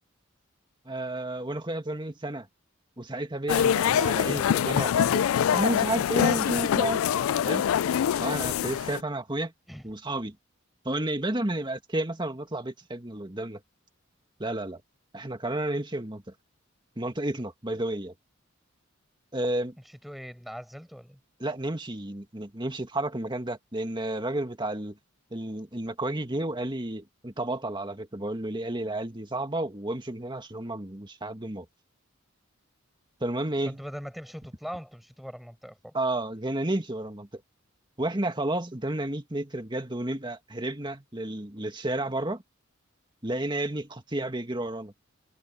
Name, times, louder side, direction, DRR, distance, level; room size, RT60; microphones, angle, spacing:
voice 1, 0.9-2.5 3.0-7.6 8.2-9.5 9.8-10.4 10.8-13.6 14.4-14.8 15.1-16.2 17.0-18.1 19.3-19.7 21.4-25.0 25.3-31.7 33.2-33.8 35.9-37.3 38.0-42.4 43.2-44.9, right 1 dB, 20° right, 2.0 m, -31 dB
sound 1, 3.5-9.0, left 9 dB, 80° left, 0.3 m, -24 dB
voice 2, 20.0-21.2 33.6-35.9, equal, ahead, 7.7 m, -41 dB
head